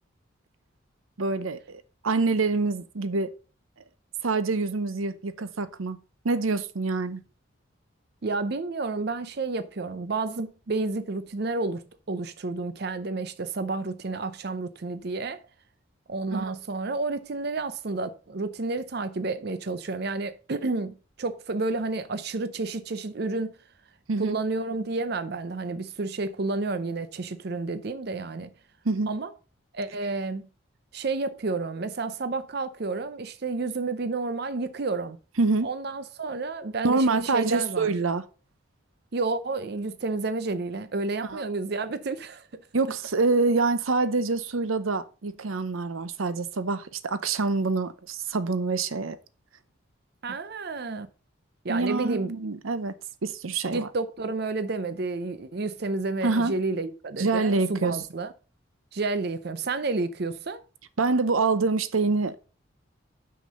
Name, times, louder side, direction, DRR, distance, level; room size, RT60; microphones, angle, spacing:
voice 1, 1.2-3.3 4.2-6.0 6.2-7.2 16.3-16.5 24.1-24.4 28.8-29.1 35.4-35.7 36.8-38.2 41.2-41.4 42.7-49.2 51.7-52.9 53.2-53.9 56.2-56.6 57.2-58.0 61.0-62.4, right 3 dB, 85° right, 0.7 m, -26 dB
voice 2, 8.2-15.4 16.1-23.5 24.2-28.5 29.1-29.3 29.7-30.5 30.9-35.2 35.6-37.9 39.1-42.5 50.2-51.1 51.6-52.3 53.7-58.3 58.9-60.6, right 3 dB, 50° right, 0.6 m, -30 dB
6.2 x 5.9 x 6.6 m
head